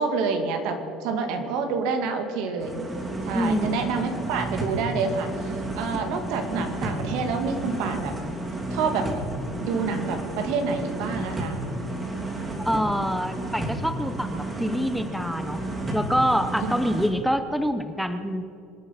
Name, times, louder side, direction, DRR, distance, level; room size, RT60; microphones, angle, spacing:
voice 1, 0.0-2.8 3.3-5.3 5.8-8.1 8.7-9.1 9.6-11.6, right 5 dB, 75° right, 5 dB, 2.4 m, -27 dB
sound 1, 2.6-17.1, right 1 dB, 20° right, 3.5 m, -32 dB
voice 2, 3.3-3.7 12.6-15.6 15.9-18.5, equal, ahead, 9 dB, 0.9 m, -26 dB
25.5 x 9.2 x 5.9 m, 2.6 s
cardioid pair, 125°, 0 cm